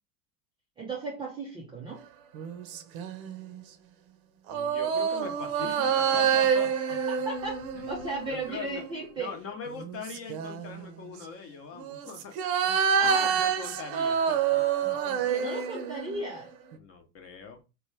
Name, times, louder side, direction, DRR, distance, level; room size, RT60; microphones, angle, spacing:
voice 1, 0.8-2.1 7.3-9.3 12.7-13.4 14.8-16.5, right 3 dB, 10° right, 0.3 m, -36 dB
sound 1, 2.3-3.6 4.5-8.9 9.7-10.9 11.7-16.4 16.7-16.8, right 7 dB, 60° right, 0.7 m, -28 dB
voice 2, 4.5-7.0 7.7-7.9 8.3-8.8 9.2-12.3 13.0-14.6 16.7-17.6, left 6 dB, 30° left, 0.8 m, -41 dB
3.0 x 2.2 x 3.1 m
hypercardioid pair, 100°, 49 cm